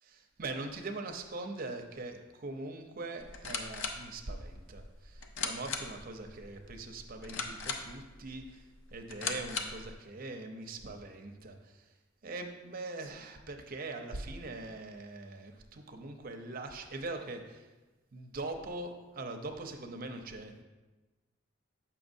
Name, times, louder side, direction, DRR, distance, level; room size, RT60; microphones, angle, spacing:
voice 1, 0.1-8.6 8.9-11.9 12.2-17.7 18.1-20.6, right 2 dB, 45° right, 5 dB, 0.6 m, -42 dB
sound 1, 3.2-9.9, left 5 dB, 75° left, 0.6 m, -40 dB
7.0 x 5.7 x 2.6 m, 1.2 s
head